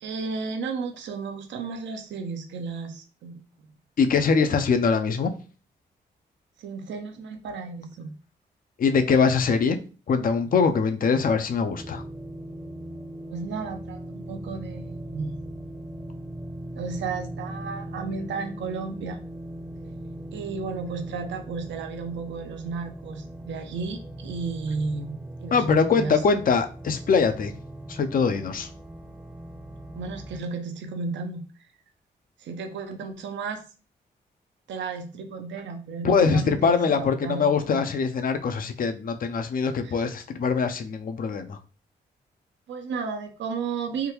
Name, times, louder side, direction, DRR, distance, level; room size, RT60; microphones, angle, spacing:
voice 1, 0.0-3.5 6.6-8.1 13.3-15.4 16.8-19.2 20.3-26.2 30.0-31.4 32.4-33.6 34.7-37.9 39.8-40.1 42.7-44.1, right 4 dB, 80° right, 6 dB, 0.6 m, -33 dB
voice 2, 4.0-5.3 8.8-9.8 10.1-12.0 25.5-27.5 27.9-28.7 36.0-41.6, left 5 dB, 50° left, 8 dB, 0.5 m, -23 dB
sound 1, 11.8-30.4, right 1 dB, 5° right, 0.5 m, -39 dB
3.6 x 2.2 x 2.9 m, 0.35 s
supercardioid pair, 50°, 19 cm